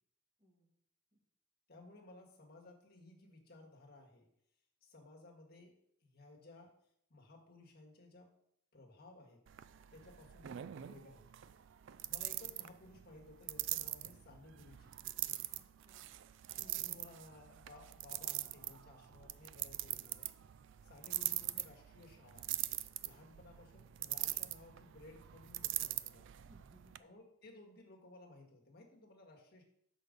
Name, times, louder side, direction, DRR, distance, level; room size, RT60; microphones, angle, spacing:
voice 1, 1.7-4.3 4.8-6.7 7.1-8.3 8.7-9.4 9.9-11.3 12.0-14.9 16.7-20.3 20.8-22.5 23.0-26.3 27.0-29.6, left 2 dB, 45° left, 0 dB, 1.7 m, -58 dB
sound 1, 9.5-27.0, right 15 dB, 60° right, 0.3 m, -43 dB
voice 2, 15.5-16.2 16.5-17.1 21.0-21.4 26.5-27.1, right 1 dB, 20° right, -2 dB, 1.7 m, -64 dB
6.2 x 5.2 x 6.6 m, 0.72 s
head